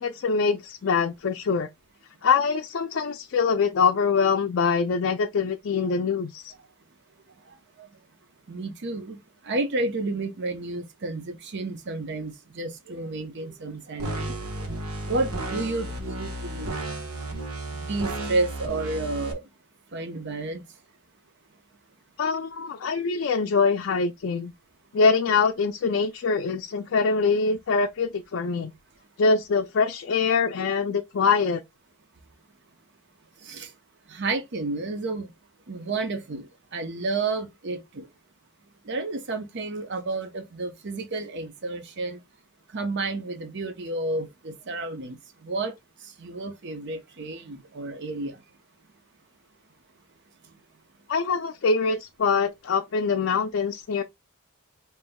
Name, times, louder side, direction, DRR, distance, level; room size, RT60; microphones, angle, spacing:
voice 1, 0.0-1.7 2.2-6.5 22.2-24.5 24.9-28.7 29.2-31.6 51.1-54.0, left 5 dB, 60° left, 0.4 m, -24 dB
voice 2, 8.5-9.2 9.4-14.6 15.1-16.7 17.7-19.4 19.9-20.6 33.4-33.7 34.1-35.3 35.7-38.0 38.9-42.2 42.7-45.2 45.4-45.7 46.2-48.4, right 2 dB, 55° right, 0.7 m, -31 dB
sound 1, 14.0-19.3, right 1 dB, 80° right, 1.2 m, -33 dB
5.2 x 2.9 x 2.2 m
head